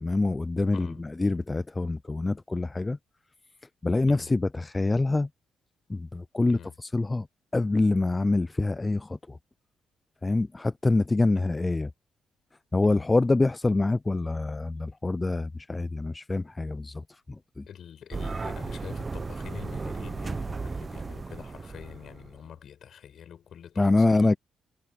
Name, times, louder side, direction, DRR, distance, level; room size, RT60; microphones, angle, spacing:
voice 1, 0.0-3.0 3.8-5.3 5.9-7.3 7.5-9.4 10.2-11.9 12.7-17.7 23.8-24.4, left 2 dB, 20° left, 0.3 m, -26 dB
voice 2, 0.7-1.0 4.1-4.3 6.5-6.7 11.3-11.5 12.8-13.1 17.7-24.4, left 9 dB, 60° left, 5.4 m, -46 dB
sound 1, 18.1-22.3, right 4 dB, 30° right, 0.8 m, -35 dB
cardioid pair, 90°, 0 cm